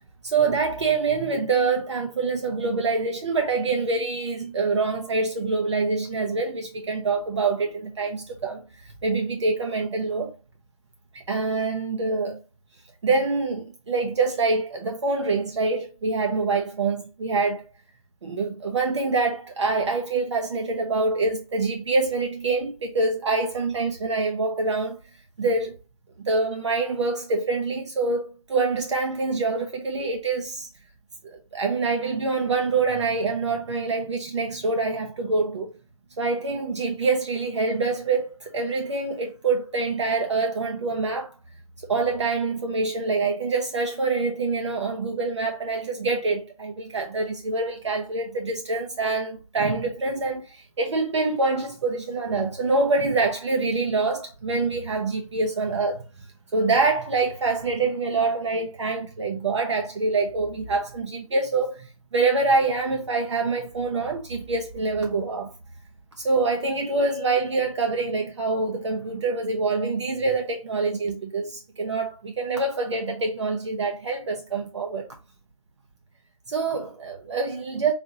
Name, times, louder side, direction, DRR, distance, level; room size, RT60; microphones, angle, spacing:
voice 1, 0.2-10.3 11.1-12.4 13.0-17.6 18.2-25.0 25.4-25.7 26.2-30.7 31.2-35.7 36.2-41.3 41.9-56.0 56.5-65.5 66.2-75.1 76.5-77.9, right 3 dB, 55° right, 0.7 m, -25 dB
4.1 x 2.8 x 2.8 m
figure-of-eight pair, 155°, 18 cm